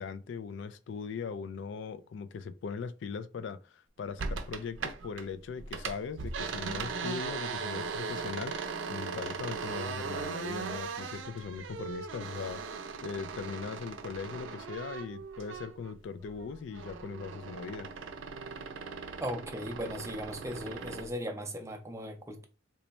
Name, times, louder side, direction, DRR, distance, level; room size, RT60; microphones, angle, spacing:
voice 1, 0.0-17.9, left 5 dB, 70° left, 0.3 m, -40 dB
sound 1, 4.2-5.3 5.6-15.9 16.3-21.1, right 5 dB, 85° right, 0.5 m, -39 dB
voice 2, 19.2-22.5, equal, 15° right, 0.5 m, -38 dB
3.0 x 2.2 x 4.0 m
head